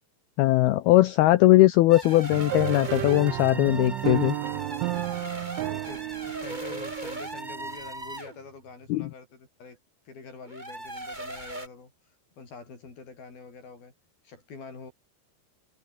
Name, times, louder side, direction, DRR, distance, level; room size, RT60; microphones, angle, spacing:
voice 1, 0.4-4.4 8.9-9.1, left 17 dB, 90° left, 2.2 m, -20 dB
sound 1, 1.9-8.4 10.4-11.7, right 1 dB, 10° right, 4.2 m, -38 dB
sound 2, 2.3-7.9, right 20 dB, 85° right, 3.1 m, -32 dB
voice 2, 4.4-5.2 5.6-9.8 10.1-11.9 12.3-13.9 14.2-14.9, left 4 dB, 50° left, 8.6 m, -45 dB
omnidirectional pair, 5.4 m